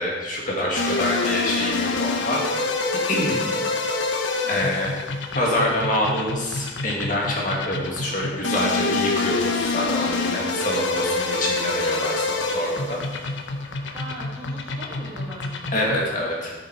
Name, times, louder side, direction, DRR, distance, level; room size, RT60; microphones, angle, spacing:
voice 1, 0.0-2.4 3.1-3.4 4.1-4.2 4.5-4.9 5.3-13.0 13.8-14.0 15.7-16.5, left 1 dB, 45° left, -3 dB, 2.4 m, -26 dB
sound 1, 0.8-16.1, left 3 dB, 85° left, 1.2 m, -27 dB
voice 2, 4.4-4.9 13.9-15.9, right 1 dB, 25° right, -4 dB, 2.7 m, -40 dB
13.0 x 7.2 x 4.8 m, 1.2 s
head